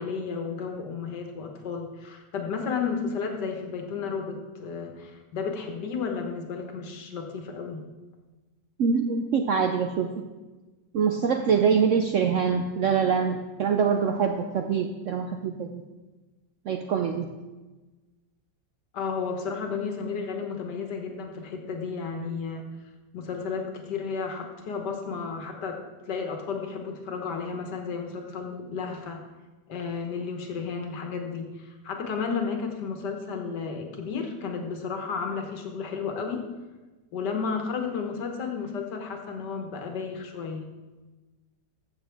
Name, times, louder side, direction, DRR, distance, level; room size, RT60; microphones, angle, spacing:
voice 1, 0.0-7.8 18.9-22.7 23.1-29.2 29.7-36.4 37.1-40.6, left 5 dB, 70° left, 3 dB, 1.8 m, -33 dB
voice 2, 8.8-10.1 10.9-15.8 16.7-17.3, right 6 dB, 70° right, 5 dB, 0.7 m, -24 dB
14.5 x 7.0 x 3.4 m, 1.2 s
omnidirectional pair, 1.9 m